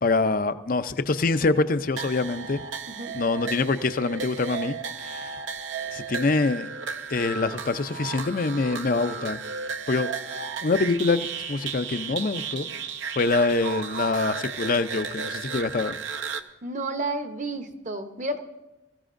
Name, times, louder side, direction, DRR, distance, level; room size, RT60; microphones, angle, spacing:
voice 1, 0.0-2.6 3.1-4.8 5.0-5.4 5.9-6.7 7.1-9.4 9.9-12.7 13.2-16.0, left 3 dB, 45° left, 12 dB, 0.5 m, -25 dB
sound 1, 2.0-16.4, right 6 dB, 75° right, 0.7 m, -34 dB
voice 2, 16.6-18.4, right 2 dB, 40° right, 7 dB, 0.9 m, -31 dB
22.0 x 15.0 x 2.6 m, 1.0 s
head